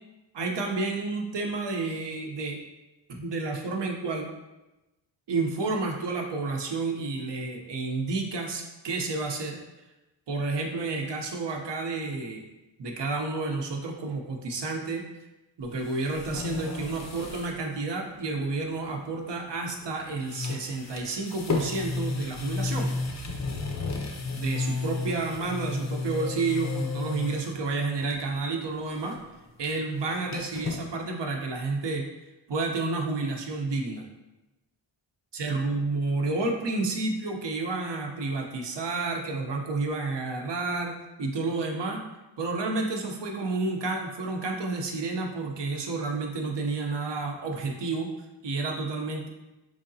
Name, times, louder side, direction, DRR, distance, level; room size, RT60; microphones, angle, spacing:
voice 1, 0.3-2.6 3.1-4.3 5.3-9.6 10.3-12.4 12.8-15.0 15.6-22.9 24.3-29.2 29.6-32.1 32.5-34.1 35.3-42.0 42.4-48.1 48.4-49.3, right 3 dB, 60° right, 2 dB, 0.7 m, -30 dB
sound 1, 15.6-17.6 17.9-18.0 19.7-20.0 20.2-27.6 28.0-28.4 28.7-30.8, left 4 dB, 35° left, 0.5 m, -33 dB
3.7 x 3.3 x 2.7 m, 1.0 s
wide cardioid pair, 75°, 48 cm